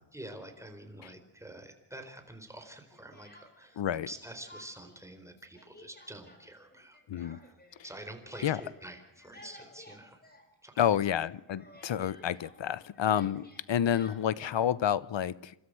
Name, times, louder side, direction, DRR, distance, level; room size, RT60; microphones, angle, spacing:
voice 1, 0.1-7.5 7.8-10.2 10.6-11.3, right 1 dB, 5° right, 5 dB, 4.1 m, -47 dB
Speech, 2.5-3.8 4.1-5.0 5.3-11.0 11.2-14.6, left 1 dB, 20° left, 4.8 m, -56 dB
voice 2, 3.8-4.1 7.1-7.4 8.4-8.6 10.8-15.5, left 9 dB, 70° left, 20 dB, 0.9 m, -29 dB
28.5 x 13.5 x 7.7 m, 0.92 s
cardioid pair, 85°, 46 cm